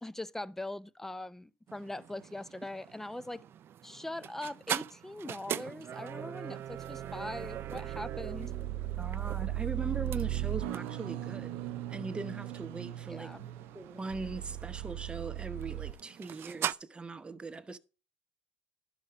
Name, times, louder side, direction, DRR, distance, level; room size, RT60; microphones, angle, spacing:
voice 1, 0.0-3.4 3.8-8.5 13.1-13.5, left 1 dB, 5° left, 0.5 m, -41 dB
sound 1, 1.7-16.7, right 10 dB, 45° right, 0.4 m, -42 dB
sound 2, 6.5-15.9, right 14 dB, 90° right, 0.6 m, -38 dB
voice 2, 9.0-13.3 13.7-17.8, right 3 dB, 20° right, 0.9 m, -40 dB
12.0 x 5.5 x 5.4 m
supercardioid pair, 100°, 6 cm